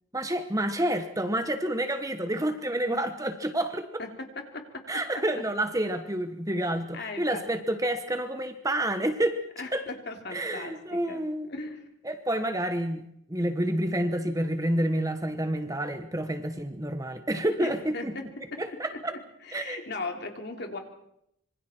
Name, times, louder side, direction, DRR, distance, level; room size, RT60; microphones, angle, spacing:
voice 1, 0.1-3.9 4.9-9.4 9.7-9.9 10.3-11.5 12.0-13.0 13.3-18.2 18.6-19.1 19.5-19.8, right 1 dB, 15° right, 8 dB, 1.2 m, -29 dB
voice 2, 4.0-4.8 6.9-7.4 9.6-11.9 17.6-18.2 18.5-18.6 19.4-20.8, left 3 dB, 50° left, 3 dB, 3.3 m, -38 dB
26.0 x 24.5 x 4.5 m, 0.74 s
head